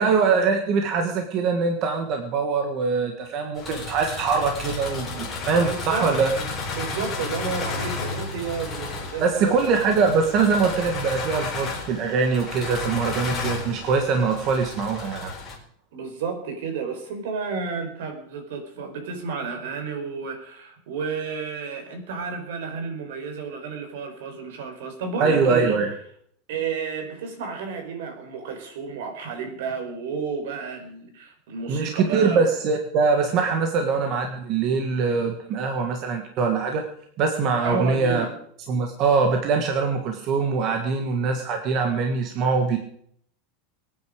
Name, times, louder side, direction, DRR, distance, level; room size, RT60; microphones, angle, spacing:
voice 1, 0.0-6.3 9.2-15.3 25.2-25.9 31.7-36.8 37.2-38.2 38.7-42.8, right 5 dB, 30° right, 4 dB, 1.6 m, -23 dB
sound 1, 3.5-15.6, left 4 dB, 10° left, 4.2 m, -33 dB
voice 2, 5.7-6.1 6.4-9.9 15.9-25.8 26.5-32.5 37.6-38.3, right 5 dB, 70° right, 6 dB, 4.7 m, -31 dB
23.5 x 9.5 x 5.1 m, 0.66 s
supercardioid pair, 180°, 0 cm